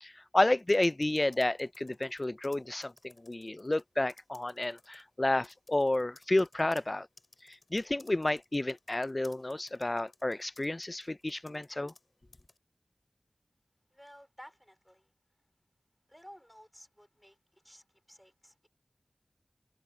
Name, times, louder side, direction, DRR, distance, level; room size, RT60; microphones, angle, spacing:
voice 1, 0.0-7.1 7.5-11.9, left 1 dB, 35° left, 0.3 m, -31 dB
sound 1, 0.6-3.8 4.1-5.0 5.4-12.1 12.3-12.6, left 2 dB, 60° left, 6.1 m, -59 dB
voice 2, 13.9-15.1 16.1-18.7, equal, 5° left, 3.9 m, -55 dB
wide cardioid pair, 55°, 0 cm